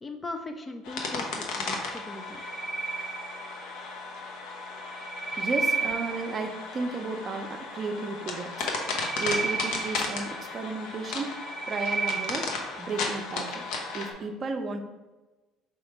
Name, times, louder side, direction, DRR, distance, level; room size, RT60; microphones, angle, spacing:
voice 1, 0.0-2.4, left 2 dB, 25° left, 5 dB, 0.4 m, -39 dB
sound 1, 0.8-14.1, left 3 dB, 75° left, 0.7 m, -35 dB
sound 2, 2.1-3.8 4.8-6.6 8.6-10.7 11.2-12.7, right 4 dB, 5° right, 0.8 m, -32 dB
voice 2, 5.4-8.7 9.2-11.4 11.7-12.5 12.8-13.7 13.9-14.8, right 3 dB, 40° right, 6 dB, 0.6 m, -33 dB
3.5 x 2.9 x 4.7 m, 1.1 s
supercardioid pair, 80°, 0 cm